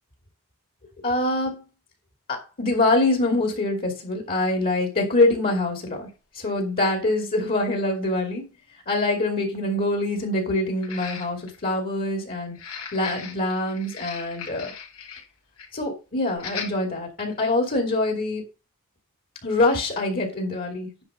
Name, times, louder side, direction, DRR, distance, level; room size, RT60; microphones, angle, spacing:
voice 1, 1.0-1.6 2.3-6.1 6.3-8.4 8.9-12.6 12.9-14.7 15.7-18.4 19.4-21.0, left 2 dB, 40° left, 2.6 m, -24 dB
sound 1, 6.1-6.2 7.2-7.3 7.7-7.8 10.8-11.6 12.5-15.3 15.6-15.8 16.4-16.7 17.3-17.4, left 6 dB, 70° left, 3.2 m, -38 dB
9.9 x 4.9 x 5.1 m
head